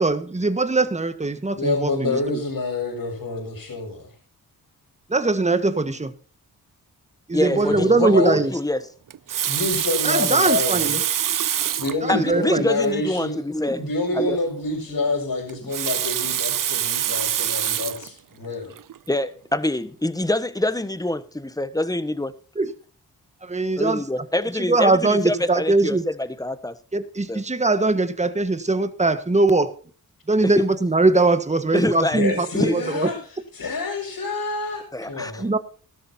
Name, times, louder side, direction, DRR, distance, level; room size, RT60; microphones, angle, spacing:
voice 1, 0.0-2.2 5.1-6.1 7.3-8.5 10.0-11.0 12.0-12.6 22.6-22.7 23.4-24.0 24.5-26.0 26.9-29.8 30.3-33.1 35.4-35.6, right 3 dB, 20° right, 1.5 m, -21 dB
voice 2, 1.6-4.0 7.5-8.4 9.5-11.0 11.8-13.4 13.8-18.7 32.1-33.2 33.5-35.5, left 2 dB, 65° left, 6.5 m, -27 dB
voice 3, 7.3-8.9 12.1-13.8 14.1-14.4 19.1-22.3 23.8-26.7 27.3-27.4 30.4-30.7 31.7-32.2 32.5-32.8 34.9-35.5, left 1 dB, 10° left, 1.3 m, -25 dB
Water tap faucet, 9.1-12.0 12.8-12.9 13.2-13.3 15.5-18.1 18.8-19.0, right 10 dB, 60° right, 0.6 m, -25 dB
16.0 x 13.0 x 2.8 m
cardioid pair, 60°, 37 cm